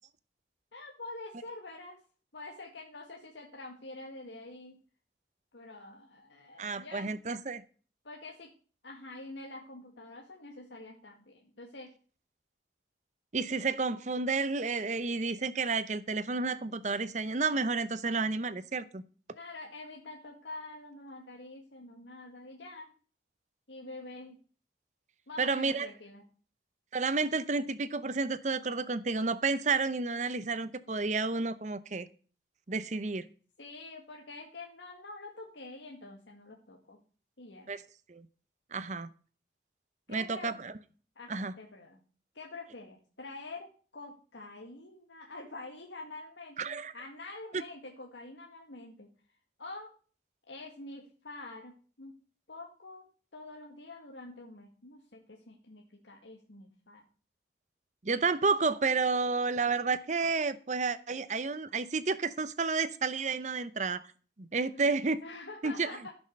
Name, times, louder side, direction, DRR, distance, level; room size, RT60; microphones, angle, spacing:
voice 1, 0.7-2.0 2.3-4.8 5.5-7.2 8.0-8.5 8.8-11.9 19.3-22.9 23.7-24.4 25.3-26.2 33.6-37.0 37.4-37.7 40.1-40.5 41.2-42.0 42.3-49.1 49.6-49.9 50.5-52.1 52.5-53.1 53.3-57.0 64.6-64.9 65.2-66.1, left 2 dB, 85° left, 2.0 m, -46 dB
voice 2, 6.6-7.6 13.3-19.0 25.4-25.9 26.9-32.1 32.7-33.3 37.7-37.8 38.1-38.3 38.7-39.1 40.1-40.7 41.3-41.5 46.6-46.9 47.5-47.6 58.0-64.1 64.4-65.2 65.6-65.9, right 4 dB, 40° right, 0.7 m, -31 dB
14.0 x 6.3 x 6.5 m
head